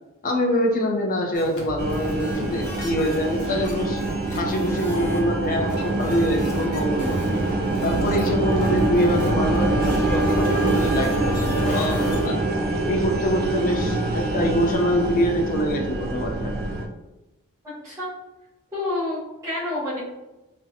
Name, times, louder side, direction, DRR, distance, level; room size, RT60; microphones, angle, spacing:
voice 1, 0.2-4.0 4.4-7.3 7.8-12.4 12.8-16.5, equal, 40° left, 2 dB, 0.4 m, -24 dB
sound 1, 1.3-12.3, left 1 dB, 80° left, 0.6 m, -37 dB
sound 2, 1.8-16.9, right 2 dB, 45° right, 0.3 m, -24 dB
Wind instrument woodwind instrument, 8.4-12.4, left 1 dB, 65° right, 1.1 m, -39 dB
voice 2, 17.6-18.1 18.7-20.0, left 2 dB, 15° right, -12 dB, 0.7 m, -29 dB
2.6 x 2.1 x 2.5 m, 1.0 s
head